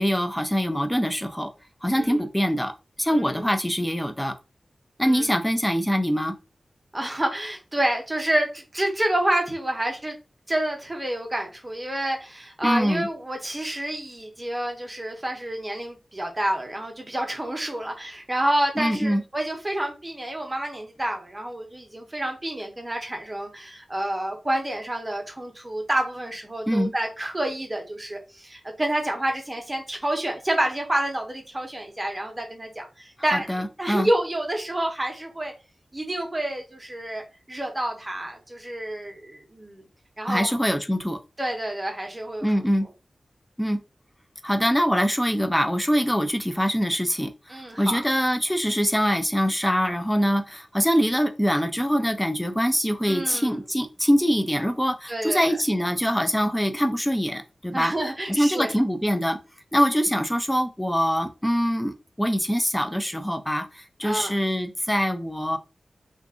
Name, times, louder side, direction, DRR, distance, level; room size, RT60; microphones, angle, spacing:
voice 1, 0.0-1.5 1.8-4.3 5.0-6.3 12.6-13.1 18.8-19.2 26.7-26.9 33.3-34.1 40.3-41.2 42.4-42.9 43.6-43.8 44.4-47.3 47.8-57.9 58.3-59.4 59.7-65.6, equal, 5° left, 0.5 m, -24 dB
voice 2, 3.1-3.5 5.0-5.4 6.9-10.1 10.5-35.5 35.9-37.2 37.5-39.8 40.2-40.5 41.4-42.5 47.5-48.0 53.1-53.6 55.1-55.6 57.7-58.7 64.0-64.4, right 1 dB, 25° right, 0.9 m, -28 dB
2.5 x 2.4 x 3.6 m
cardioid pair, 60°, 0 cm